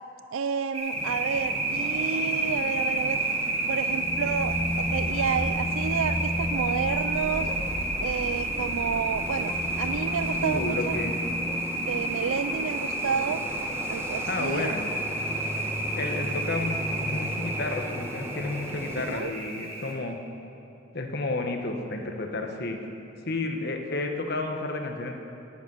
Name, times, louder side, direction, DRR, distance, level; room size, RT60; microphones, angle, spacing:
voice 1, 0.3-3.2 3.7-7.5 8.0-10.9 11.9-13.4 13.9-14.7 19.1-19.3, right 6 dB, 75° right, 11 dB, 0.4 m, -30 dB
sound 1, 0.7-19.9, right 2 dB, 30° right, 2.2 m, -31 dB
sound 2, 0.9-19.2, equal, 10° right, 1.1 m, -38 dB
sound 3, 3.9-12.4, left 1 dB, 15° left, 0.6 m, -34 dB
voice 2, 10.4-11.2 14.3-14.9 15.9-20.2 20.9-22.8 23.2-25.2, left 2 dB, 55° left, 4 dB, 1.3 m, -31 dB
11.5 x 9.3 x 9.3 m, 2.9 s
head